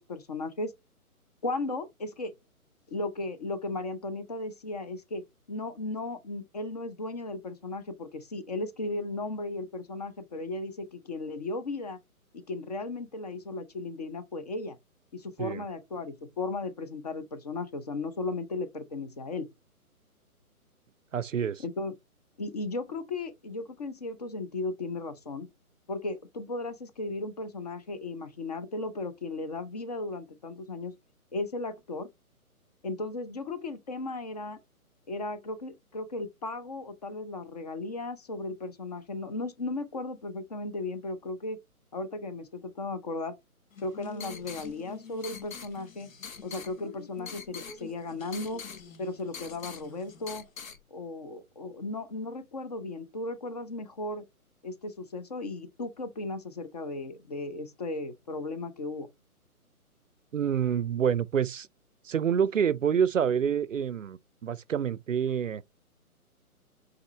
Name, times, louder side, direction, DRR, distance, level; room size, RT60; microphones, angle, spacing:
voice 1, 0.1-0.7 1.4-2.3 2.9-5.2 5.5-12.0 12.5-14.8 15.1-19.5 21.6-21.9 22.4-25.5 25.9-30.9 31.3-32.1 32.8-34.6 35.1-41.6 41.9-43.3 43.8-46.1 46.4-48.6 49.0-50.5 50.9-54.2 54.6-59.1, left 2 dB, 25° left, 0.7 m, -36 dB
voice 2, 21.1-21.6 60.3-61.7 62.0-65.6, right 8 dB, 60° right, 0.6 m, -27 dB
sound 1, 43.7-50.8, left 6 dB, 60° left, 1.2 m, -44 dB
7.8 x 4.1 x 3.2 m
figure-of-eight pair, 140°, 45 cm